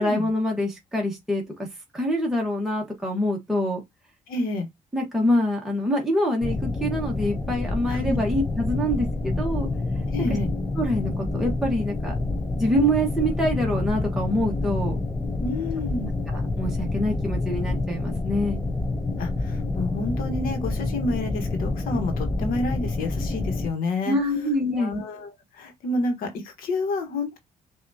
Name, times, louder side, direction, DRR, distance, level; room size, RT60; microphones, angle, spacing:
voice 1, 0.0-1.7 1.9-3.8 4.9-9.7 10.8-12.2 12.5-15.0 16.0-18.6 24.0-24.9, equal, 5° right, 1.5 m, -25 dB
voice 2, 4.3-4.7 7.9-8.2 10.1-10.5 15.4-16.1 19.2-24.2 24.7-27.4, left 2 dB, 85° left, 1.4 m, -29 dB
sound 1, 6.4-23.7, left 2 dB, 15° left, 0.7 m, -28 dB
5.6 x 2.7 x 2.7 m
cardioid pair, 90°, 15 cm